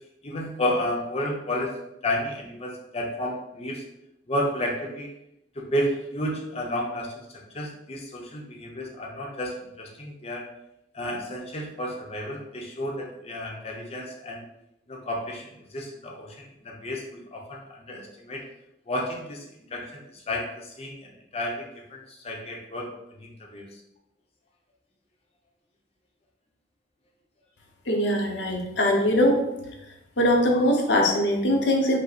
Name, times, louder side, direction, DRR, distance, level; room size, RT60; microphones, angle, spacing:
voice 1, 0.2-1.7 2.0-3.8 4.3-5.1 5.5-7.1 7.5-10.5 10.9-14.4 14.9-18.4 18.9-19.4 19.7-23.8, left 1 dB, 35° left, -1 dB, 0.7 m, -32 dB
voice 2, 27.9-29.4 30.2-32.0, left 1 dB, 65° left, 1 dB, 0.8 m, -21 dB
5.4 x 2.1 x 4.1 m, 0.85 s
head